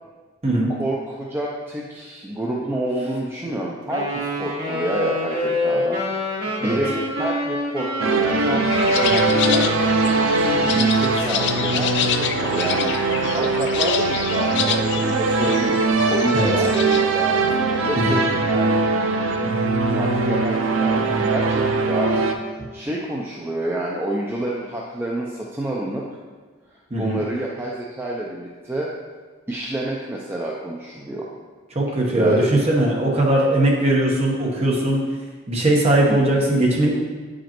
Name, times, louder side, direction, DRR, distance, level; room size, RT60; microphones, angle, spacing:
voice 1, 0.8-6.2 6.6-9.7 10.3-12.9 13.3-15.8 16.1-18.8 19.9-22.3 22.5-26.0 27.0-28.9 29.5-31.3 32.1-32.6 36.1-36.2, right 1 dB, 10° right, -3 dB, 0.4 m, -28 dB
Wind instrument woodwind instrument, 3.9-10.9, left 1 dB, 50° right, 1.8 m, -26 dB
sound 1, 8.0-22.3, right 3 dB, 80° right, 0.5 m, -21 dB
sound 2, 8.7-17.0, left 8 dB, 60° left, 0.4 m, -28 dB
voice 2, 31.7-35.0 35.5-36.9, right 1 dB, 30° right, -2 dB, 1.1 m, -19 dB
8.1 x 5.0 x 3.0 m, 1.4 s
head